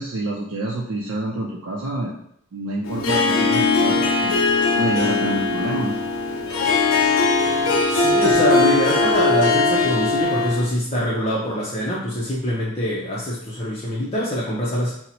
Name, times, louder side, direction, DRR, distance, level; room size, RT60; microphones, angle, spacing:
voice 1, 0.0-2.2 2.5-4.4 4.8-6.0, right 2 dB, 80° right, -3 dB, 0.5 m, -27 dB
Harp, 2.8-10.7, left 3 dB, 75° left, 0.6 m, -20 dB
voice 2, 7.9-14.9, left 1 dB, 30° left, -7 dB, 0.6 m, -24 dB
2.8 x 2.1 x 4.0 m, 0.67 s
head